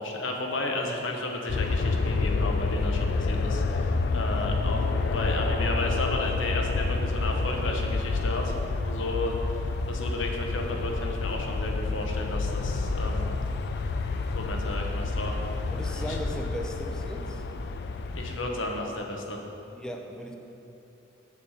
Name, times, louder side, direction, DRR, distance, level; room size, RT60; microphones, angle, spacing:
voice 1, 0.0-4.8 5.1-8.5 8.8-13.3 14.3-16.2 18.1-19.4, left 2 dB, 75° left, 1 dB, 1.0 m, -33 dB
sound 1, 1.5-18.4, left 3 dB, 60° left, 0.4 m, -28 dB
voice 2, 15.7-17.4 19.7-20.4, equal, 5° left, 2 dB, 0.6 m, -37 dB
7.1 x 6.8 x 4.9 m, 3.0 s
head